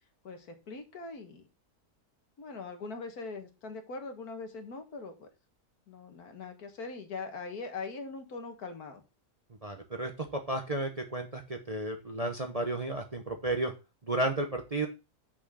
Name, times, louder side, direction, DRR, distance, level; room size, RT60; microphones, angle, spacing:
voice 1, 0.2-1.5 2.4-5.3 5.9-9.0, left 4 dB, 70° left, 6 dB, 1.9 m, -41 dB
voice 2, 9.6-13.7 14.0-14.9, right 2 dB, 30° right, 4 dB, 0.9 m, -33 dB
6.3 x 6.2 x 6.2 m, 0.29 s
omnidirectional pair, 1.7 m